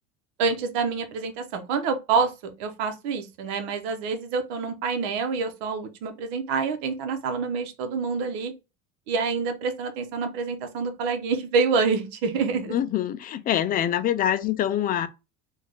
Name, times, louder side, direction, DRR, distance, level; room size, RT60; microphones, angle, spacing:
voice 1, 0.4-8.5 9.1-12.8, right 5 dB, 75° right, 1.0 m, -27 dB
voice 2, 12.7-15.1, left 10 dB, 25° left, 0.4 m, -25 dB
3.7 x 2.5 x 3.3 m
supercardioid pair, 130°, 33 cm